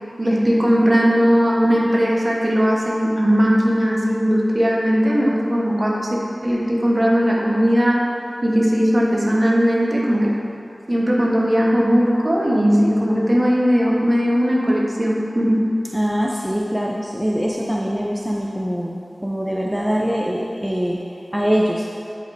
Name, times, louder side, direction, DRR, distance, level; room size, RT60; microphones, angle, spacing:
voice 1, 0.2-8.1 8.4-10.4 10.9-15.6, equal, 45° right, -4 dB, 1.2 m, -18 dB
voice 2, 15.9-21.0 21.3-21.9, equal, 5° right, -2 dB, 0.5 m, -23 dB
11.0 x 5.1 x 2.7 m, 2.6 s
wide cardioid pair, 50°, 0 cm